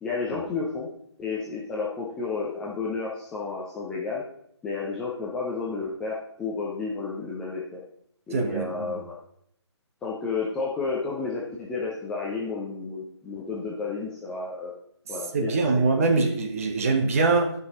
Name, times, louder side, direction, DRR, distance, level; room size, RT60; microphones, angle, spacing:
voice 1, 0.0-0.9 1.2-4.2 4.6-7.8 8.3-9.1 10.0-14.7 15.1-15.7, left 4 dB, 5° left, -5 dB, 0.5 m, -31 dB
voice 2, 8.3-9.0 15.3-17.5, right 3 dB, 30° right, 4 dB, 1.3 m, -23 dB
15.0 x 5.5 x 3.7 m, 0.71 s
figure-of-eight pair, 155°, 15 cm